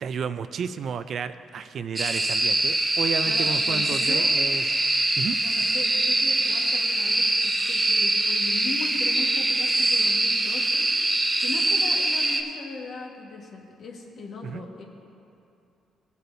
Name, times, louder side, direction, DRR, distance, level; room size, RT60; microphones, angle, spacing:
voice 1, 0.0-4.6 5.2-5.4 14.4-14.6, right 7 dB, 60° right, 11 dB, 0.4 m, -32 dB
sound 1, 2.0-12.4, right 2 dB, 20° right, 0.9 m, -23 dB
voice 2, 3.2-4.3 5.4-10.9 11.4-14.8, left 4 dB, 65° left, 0 dB, 1.5 m, -38 dB
18.5 x 8.2 x 2.7 m, 2.7 s
cardioid pair, 90°, 0 cm